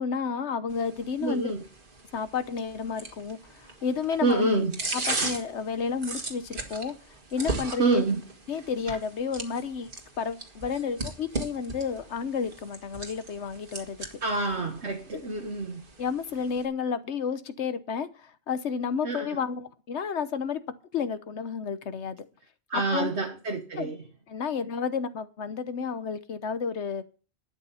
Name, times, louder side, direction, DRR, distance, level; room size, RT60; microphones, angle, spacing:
voice 1, 0.0-1.5 2.1-4.5 4.9-7.0 7.3-8.0 8.5-9.9 10.2-14.0 16.0-20.6 20.9-22.2 22.7-23.1 23.8-23.9 24.3-27.0, left 6 dB, 75° left, 1.3 m, -31 dB
sound 1, 0.7-16.7, right 3 dB, 50° right, 1.9 m, -38 dB
voice 2, 1.2-1.6 4.2-4.8 7.8-8.2 14.2-15.8 19.0-19.4 22.7-24.0, right 3 dB, 75° right, 1.6 m, -27 dB
12.0 x 8.6 x 5.5 m
omnidirectional pair, 1.2 m